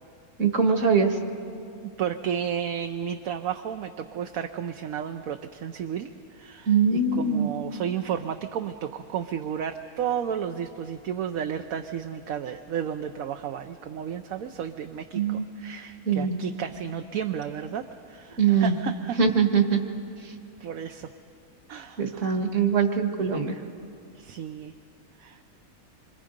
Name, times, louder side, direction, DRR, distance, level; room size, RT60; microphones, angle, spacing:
voice 1, 0.4-1.2 6.7-7.5 15.1-15.5 16.0-16.4 18.4-18.7 19.2-19.8 20.2-20.3 22.0-23.6, right 5 dB, 55° right, 5 dB, 1.8 m, -22 dB
voice 2, 1.8-19.2 20.6-21.1 21.7-22.4 24.2-24.7 25.2-25.5, right 8 dB, 70° right, 6 dB, 1.1 m, -33 dB
27.0 x 24.5 x 5.2 m, 2.5 s
omnidirectional pair, 1.6 m